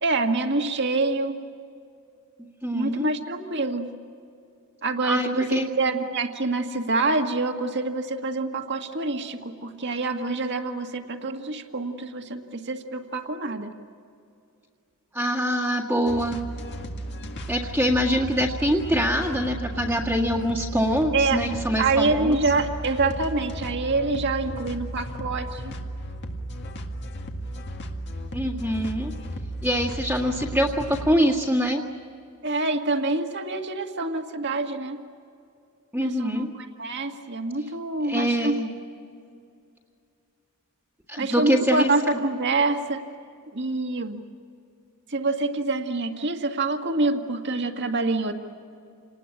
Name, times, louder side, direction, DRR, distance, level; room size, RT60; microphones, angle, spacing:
voice 1, 0.0-1.4 2.7-3.9 4.8-13.7 21.1-21.4 21.8-25.7 32.4-35.0 36.0-38.6 41.2-43.0 43.5-44.2 45.1-48.4, right 3 dB, 55° right, 5 dB, 1.9 m, -26 dB
voice 2, 2.6-3.1 5.0-5.7 15.1-16.4 17.5-22.4 28.3-29.1 29.6-31.8 35.9-36.5 38.0-38.7 41.1-41.9, equal, 10° right, -4 dB, 1.8 m, -24 dB
sound 1, 16.1-31.1, right 1 dB, 55° left, 2.0 m, -35 dB
28.5 x 20.0 x 8.7 m, 2.4 s
head